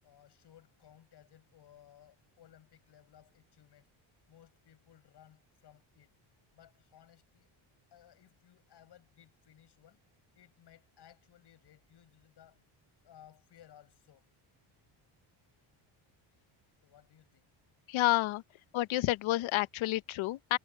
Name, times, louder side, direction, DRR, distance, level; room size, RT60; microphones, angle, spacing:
voice 1, 0.0-3.9 4.3-6.1 6.5-7.5 7.9-10.0 10.3-12.6 13.0-14.3 16.8-17.5, left 11 dB, 55° left, 7.0 m, -60 dB
voice 2, 17.9-18.4 18.7-20.6, left 16 dB, 70° left, 0.8 m, -29 dB
cardioid pair, 155°, 50 cm